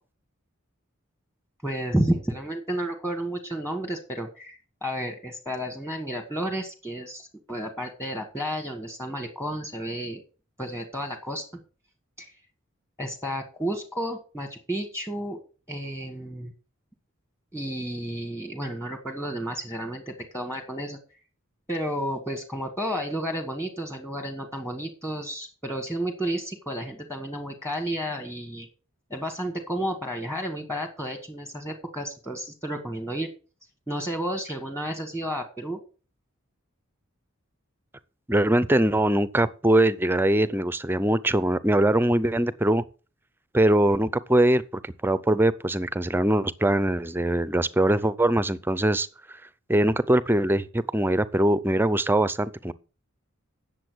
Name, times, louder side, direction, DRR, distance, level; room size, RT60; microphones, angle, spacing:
voice 1, 1.6-10.2 10.6-11.4 12.2-12.4 13.0-15.4 15.7-16.5 17.5-21.0 21.7-28.7 29.1-33.3 33.9-35.8, equal, 10° left, 1.4 m, -31 dB
voice 2, 38.3-42.8 43.5-49.1 49.7-52.7, right 1 dB, 10° right, 0.5 m, -22 dB
9.9 x 7.1 x 6.2 m
head